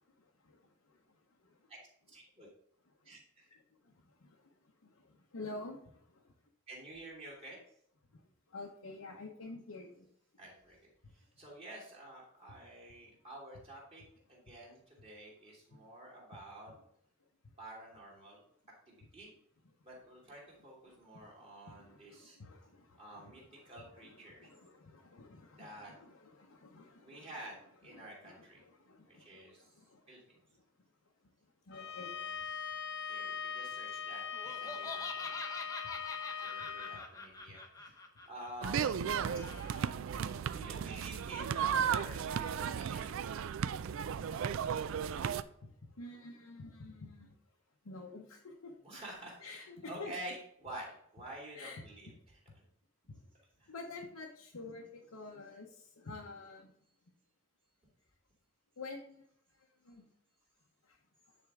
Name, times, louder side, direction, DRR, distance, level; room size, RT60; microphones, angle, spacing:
voice 1, 0.2-0.6 1.4-1.6 3.9-4.0 4.2-4.4 4.8-6.3 8.1-8.2 8.5-10.0 20.9-21.3 21.8-23.6 24.0-27.3 27.9-30.0 31.7-32.1 40.2-40.5 45.6-45.7 46.0-47.3 47.8-48.7 49.4-50.1 51.5-51.8 53.1-53.2 53.7-56.7 58.8-59.3 59.8-60.0 60.9-61.0, left 3 dB, 90° left, -1 dB, 0.9 m, -49 dB
voice 2, 2.1-2.5 3.0-3.6 6.7-7.6 10.4-14.0 14.3-16.7 17.6-18.4 18.9-19.3 19.8-22.4 23.0-24.5 25.6-25.9 27.0-28.6 29.1-30.4 31.7-32.4 33.1-35.3 36.4-38.8 40.5-43.6 48.8-52.4 53.6-53.7 56.9-57.0 59.9-60.0, right 1 dB, 30° right, -4 dB, 2.5 m, -50 dB
Bowed string instrument, 31.7-37.0, left 7 dB, 55° left, 0.6 m, -41 dB
Laughter, 34.3-39.9, left 3 dB, 15° left, 0.7 m, -46 dB
sound 1, 38.6-45.4, right 7 dB, 65° right, 0.3 m, -35 dB
9.4 x 4.3 x 3.6 m, 0.69 s
head